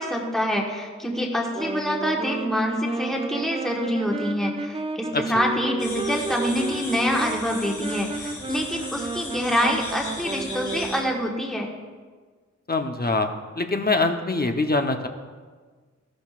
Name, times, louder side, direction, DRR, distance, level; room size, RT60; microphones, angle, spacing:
voice 1, 0.0-11.7, equal, ahead, -1 dB, 1.4 m, -26 dB
Wind instrument woodwind instrument, 1.4-11.1, right 3 dB, 20° right, 0.6 m, -33 dB
sound 1, 5.8-11.0, left 2 dB, 85° left, 2.9 m, -37 dB
voice 2, 12.7-13.3 13.6-15.1, left 3 dB, 30° left, 5 dB, 0.9 m, -23 dB
14.0 x 11.5 x 2.5 m, 1.5 s
wide cardioid pair, 80°, 30 cm